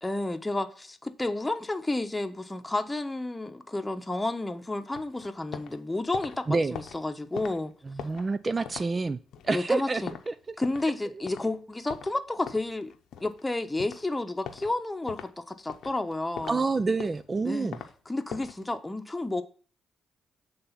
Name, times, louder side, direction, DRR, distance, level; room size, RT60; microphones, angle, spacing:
voice 1, 0.0-6.5 6.7-7.7 9.5-10.2 10.6-12.9 13.2-16.6 17.4-17.7 18.1-19.4, left 2 dB, 15° left, 0.9 m, -31 dB
sound 1, 4.9-5.8 6.0-11.0 11.3-11.5 11.9-13.5 13.8-14.1 14.5-14.7 15.1-15.3 15.7-16.6 16.9-17.9 18.3-18.6, left 8 dB, 75° left, 0.8 m, -41 dB
voice 2, 6.5-6.8 7.9-10.3 16.5-17.8, right 3 dB, 35° right, 0.4 m, -28 dB
7.6 x 3.4 x 5.7 m
supercardioid pair, 55°, 0 cm